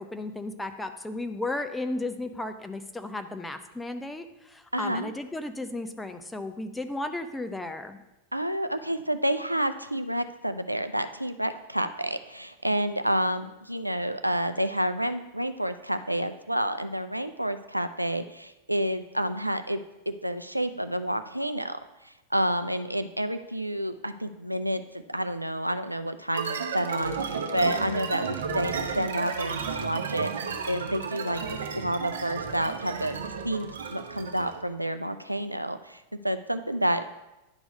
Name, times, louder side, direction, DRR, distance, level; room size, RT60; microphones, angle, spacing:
voice 1, 0.0-8.0, left 2 dB, 5° left, 7 dB, 0.7 m, -34 dB
voice 2, 4.7-5.1 8.3-19.8 20.1-21.8 22.0-24.8 25.1-37.1, right 1 dB, 90° right, 9 dB, 0.4 m, -29 dB
sound 1, 26.3-34.6, right 5 dB, 65° right, 0.8 m, -33 dB
10.5 x 4.7 x 5.2 m, 0.98 s
figure-of-eight pair, 90°, 0 cm